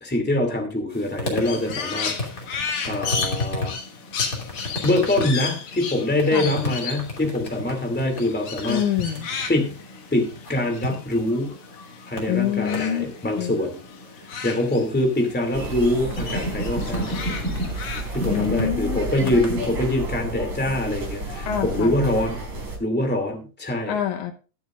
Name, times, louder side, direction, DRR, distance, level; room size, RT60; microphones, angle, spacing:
voice 1, 0.0-2.4 2.8-3.7 4.8-8.8 9.5-9.8 10.1-11.6 12.1-13.7 14.4-17.2 18.1-22.4 22.8-23.9, left 1 dB, 5° left, 4 dB, 2.0 m, -24 dB
sound 1, 0.9-19.7, left 1 dB, 30° left, 3.0 m, -34 dB
Crow, 1.4-12.1 12.4-15.4 15.7-18.4, left 5 dB, 55° left, 2.0 m, -34 dB
voice 2, 8.7-9.3 12.3-13.1 13.4-13.6 18.3-19.3 21.5-21.9 23.9-24.3, left 10 dB, 80° left, 7 dB, 2.4 m, -26 dB
sound 2, 15.5-22.8, right 2 dB, 90° right, 6.0 m, -31 dB
21.5 x 7.2 x 2.5 m, 0.34 s
omnidirectional pair, 3.4 m